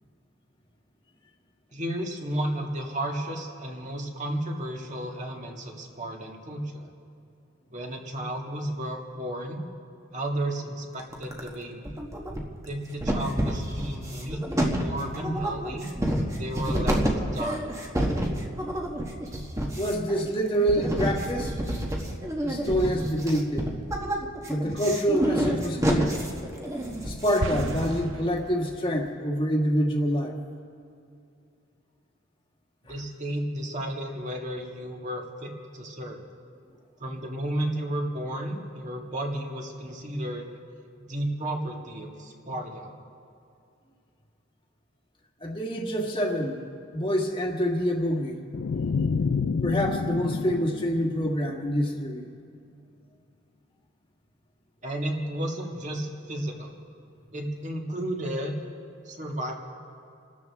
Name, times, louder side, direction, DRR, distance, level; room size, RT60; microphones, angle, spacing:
voice 1, 1.7-6.9 7.7-9.6 10.1-11.9 12.7-14.4 14.8-15.9 16.3-17.7 32.9-36.2 37.0-40.5 41.1-42.9 54.8-56.7 57.3-58.6 59.1-59.5, right 1 dB, 35° right, 1 dB, 1.9 m, -33 dB
sound 1, 11.0-11.5 11.8-12.7 13.0-28.2, right 1 dB, 15° right, 1.4 m, -29 dB
voice 2, 19.8-21.5 22.4-23.7 24.5-26.2 27.0-30.4 32.9-33.0 45.4-46.6 46.9-48.4 49.6-52.2, equal, 25° left, 1 dB, 1.7 m, -26 dB
sound 2, 27.4-29.0, right 3 dB, 65° right, 0.6 m, -35 dB
sound 3, 48.5-51.8, left 5 dB, 55° left, 0.4 m, -29 dB
28.0 x 13.5 x 3.6 m, 2.5 s
head